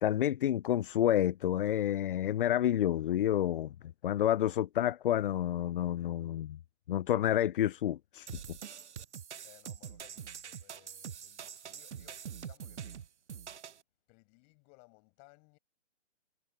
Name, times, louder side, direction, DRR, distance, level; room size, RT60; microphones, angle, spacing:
voice 1, 0.0-3.7 4.0-6.6 6.9-8.3, left 11 dB, 50° left, 0.5 m, -29 dB
sound 1, 8.3-13.8, right 8 dB, 75° right, 1.1 m, -45 dB
voice 2, 9.4-12.9 14.1-15.6, left 40 dB or more, 30° left, 7.6 m, -62 dB
hypercardioid pair, 135°, 35 cm